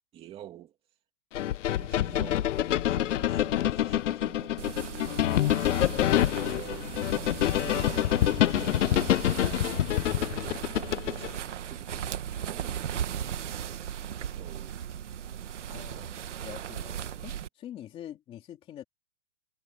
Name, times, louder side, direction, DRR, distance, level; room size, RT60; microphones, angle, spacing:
voice 1, 0.1-0.7 1.8-4.8 5.6-8.2 8.6-9.3 10.1-12.1 12.4-13.7 14.3-14.7 15.7-16.5 16.9-17.3, right 11 dB, 15° right, 2.4 m, -49 dB
sound 1, 1.3-11.3, left 12 dB, 90° left, 0.6 m, -26 dB
sound 2, 4.6-17.5, right 9 dB, 80° right, 1.8 m, -37 dB
voice 2, 15.7-18.8, left 11 dB, 15° left, 2.7 m, -46 dB
hypercardioid pair, 165°, 35 cm